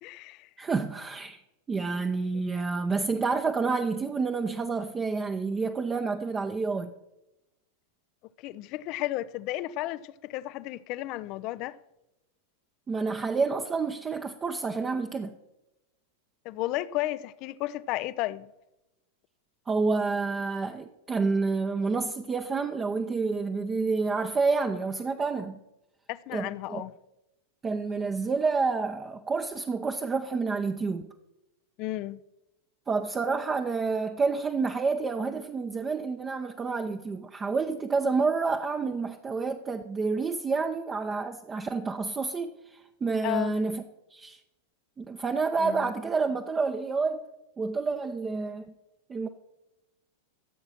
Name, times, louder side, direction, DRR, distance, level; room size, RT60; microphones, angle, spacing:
voice 1, 0.0-0.5 8.4-11.8 16.4-18.5 26.1-26.9 31.8-32.2 43.2-43.6 45.6-45.9, left 16 dB, 40° left, 0.6 m, -33 dB
voice 2, 0.6-1.4 1.7-6.9 12.9-15.3 19.7-25.6 26.3-26.8 27.6-31.1 32.9-43.8 44.1-44.4 45.0-47.2 47.6-48.6 49.1-49.3, right 4 dB, 20° right, 0.8 m, -29 dB
15.5 x 7.9 x 5.8 m
figure-of-eight pair, 90°, 0 cm